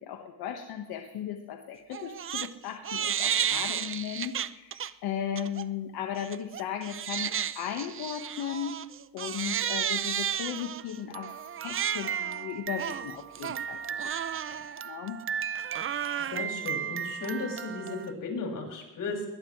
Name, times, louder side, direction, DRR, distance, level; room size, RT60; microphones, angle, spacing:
voice 1, 0.0-8.8 9.1-11.3 11.6-14.1 14.5-14.6 14.8-15.2, left 9 dB, 85° left, 4 dB, 1.6 m, -36 dB
Crying sobbing, 1.9-2.5 2.8-4.9 5.4-5.6 6.2-18.1, right 9 dB, 35° right, 0.6 m, -33 dB
voice 2, 16.2-19.2, left 3 dB, 60° left, 0 dB, 6.4 m, -35 dB
21.0 x 20.0 x 3.3 m, 1.1 s
cardioid pair, 115°, 37 cm